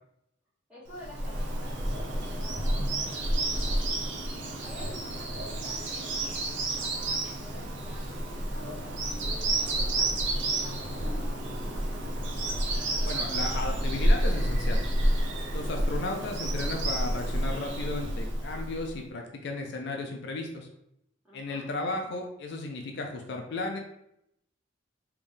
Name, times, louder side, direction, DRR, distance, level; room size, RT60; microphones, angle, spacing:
voice 1, 0.7-4.1 4.6-11.5 15.6-16.1 21.2-21.7, left 1 dB, 5° right, -7 dB, 1.2 m, -50 dB
Bird vocalization bird call bird song, 0.9-18.9, right 1 dB, 65° right, 0.7 m, -29 dB
voice 2, 13.0-14.8 15.5-20.7 21.3-23.8, left 2 dB, 60° left, 3 dB, 0.4 m, -34 dB
3.4 x 2.6 x 3.5 m, 0.78 s
head